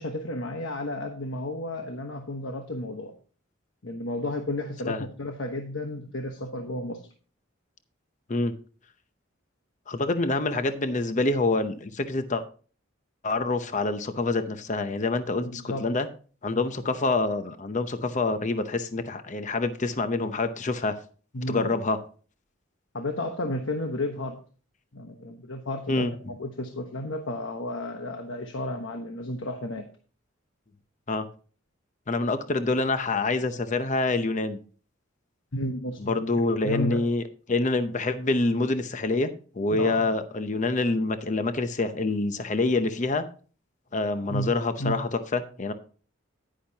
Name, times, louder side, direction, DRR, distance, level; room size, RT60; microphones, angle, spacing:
voice 1, 0.0-3.1 3.8-7.0 15.4-15.9 21.3-21.7 22.9-24.4 24.9-29.9 35.5-36.1 36.6-37.0 39.7-40.0 44.3-44.5 44.8-45.0, left 1 dB, 70° left, 5 dB, 1.1 m, -32 dB
voice 2, 9.9-12.4 13.2-16.1 16.4-20.9 21.5-22.0 25.9-26.1 31.1-31.3 32.1-34.6 36.0-37.2 37.5-39.3 39.6-43.2 43.9-45.7, left 3 dB, 40° left, 9 dB, 0.7 m, -26 dB
10.5 x 10.0 x 2.8 m, 0.38 s
head